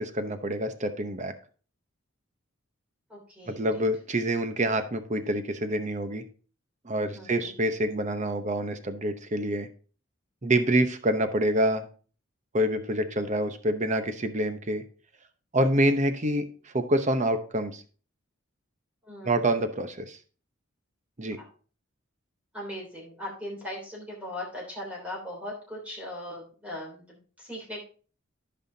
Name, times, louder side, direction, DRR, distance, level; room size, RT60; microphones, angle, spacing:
voice 1, 0.0-1.3 3.5-6.2 6.8-9.7 10.4-11.9 12.5-14.8 15.5-17.8 19.2-20.2 21.2-21.4, right 1 dB, 35° right, 8 dB, 0.9 m, -27 dB
voice 2, 3.1-3.8 7.1-7.5 19.0-19.5 21.3-21.5 22.5-27.8, left 1 dB, 5° right, -3 dB, 3.1 m, -39 dB
14.5 x 5.6 x 2.8 m, 0.40 s
head